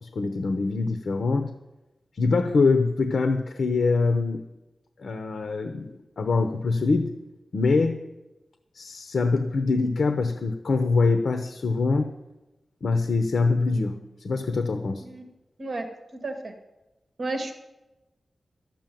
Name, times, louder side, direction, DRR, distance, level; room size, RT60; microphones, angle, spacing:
voice 1, 0.0-1.5 2.2-4.4 5.0-7.1 7.5-8.0 8.8-12.1 12.8-15.0, left 3 dB, 65° left, 7 dB, 0.8 m, -24 dB
voice 2, 15.6-16.5 17.2-17.5, right 2 dB, 45° right, 4 dB, 1.9 m, -33 dB
12.5 x 7.4 x 9.2 m, 1.0 s
wide cardioid pair, 155°, 0 cm